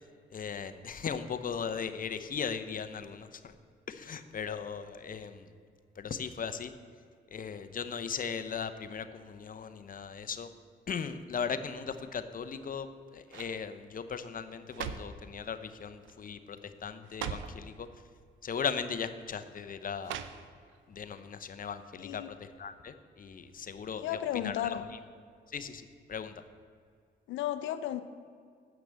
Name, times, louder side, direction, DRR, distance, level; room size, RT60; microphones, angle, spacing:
voice 1, 0.3-3.5 3.9-5.5 6.0-6.7 7.3-10.5 10.9-12.9 13.1-17.9 18.4-20.2 20.9-22.2 22.6-24.8 25.5-26.4, left 6 dB, 45° left, 10 dB, 0.8 m, -38 dB
sound 1, 12.4-12.9 13.3-13.6 14.4-15.2 16.0-16.3 16.6-16.7 17.0-17.6 18.5-18.7 20.0-20.8 21.2-21.3, right 8 dB, 85° right, 0.6 m, -41 dB
voice 2, 21.9-22.3 24.0-24.8 27.3-28.0, left 11 dB, 85° left, 11 dB, 0.5 m, -34 dB
8.2 x 6.0 x 7.5 m, 2.2 s
supercardioid pair, 65°, 19 cm